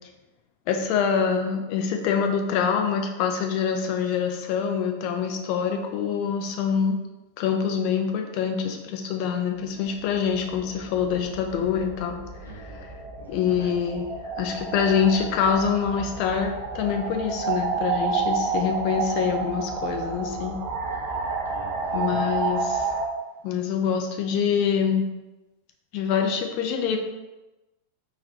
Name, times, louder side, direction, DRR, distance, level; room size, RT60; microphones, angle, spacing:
voice 1, 0.7-7.0 7.4-12.2 13.3-14.1 14.4-20.6 21.9-22.9 23.4-25.1 25.9-27.0, left 7 dB, 45° left, 3 dB, 0.5 m, -25 dB
sound 1, 9.8-23.1, right 4 dB, 45° right, 0.6 m, -30 dB
voice 2, 12.4-12.8 13.2-13.7 20.9-22.4, right 1 dB, 80° left, -2 dB, 0.8 m, -44 dB
3.9 x 2.7 x 2.8 m, 1.1 s
figure-of-eight pair, 90°, 0 cm